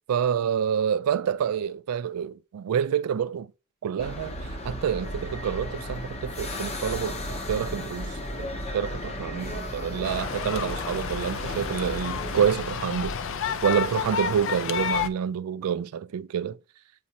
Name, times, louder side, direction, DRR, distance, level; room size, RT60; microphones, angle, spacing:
voice 1, 0.1-3.5 3.8-13.2 13.6-16.6, right 8 dB, 90° right, 0.3 m, -28 dB
sound 1, 4.0-12.5, left 1 dB, 30° left, 0.7 m, -34 dB
sound 2, 10.0-15.1, left 7 dB, 60° left, 0.5 m, -31 dB
8.5 x 4.1 x 2.8 m
head